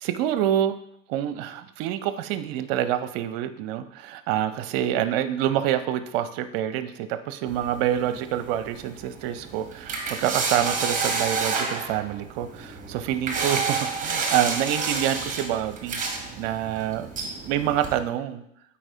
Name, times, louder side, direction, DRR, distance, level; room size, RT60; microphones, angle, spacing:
voice 1, 0.0-0.8 1.1-16.0 16.4-17.1 17.5-18.4, right 11 dB, 50° right, 11 dB, 0.6 m, -27 dB
sound 1, 7.5-18.0, right 4 dB, 20° right, 1.1 m, -30 dB
8.7 x 4.3 x 2.7 m, 0.72 s
figure-of-eight pair, 85°, 39 cm